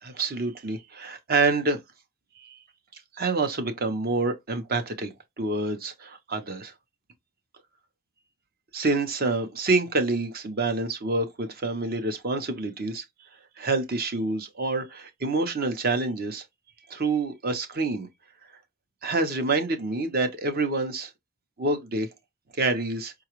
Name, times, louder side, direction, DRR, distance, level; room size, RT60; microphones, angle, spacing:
voice 1, 0.0-1.8 2.4-2.6 3.1-5.1 5.4-6.7 8.7-13.0 13.6-16.4 16.9-18.1 19.0-21.1 21.6-22.1 22.6-23.1, right 3 dB, 45° right, 0.7 m, -27 dB
4.8 x 2.3 x 3.0 m
head